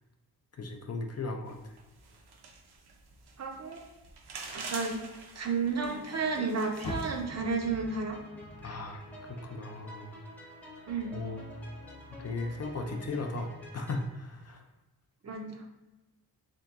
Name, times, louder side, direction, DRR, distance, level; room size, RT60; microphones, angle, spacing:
voice 1, 0.6-1.7 8.6-9.0 9.3-10.1 11.1-11.5 12.2-14.6, left 3 dB, 40° left, 4 dB, 0.5 m, -37 dB
sound 1, 1.5-7.3, right 4 dB, 80° right, 0.7 m, -46 dB
voice 2, 3.4-3.9 4.5-5.0 5.4-8.2 10.9-11.1 15.2-15.6, right 4 dB, 45° right, 2 dB, 0.6 m, -32 dB
sound 2, 5.7-14.1, equal, 5° left, 0.7 m, -48 dB
Car, 6.8-10.1 10.5-11.8 12.3-12.4 13.0-13.1, left 1 dB, 75° left, 0.8 m, -44 dB
3.6 x 2.9 x 3.5 m, 1.1 s
wide cardioid pair, 155°, 39 cm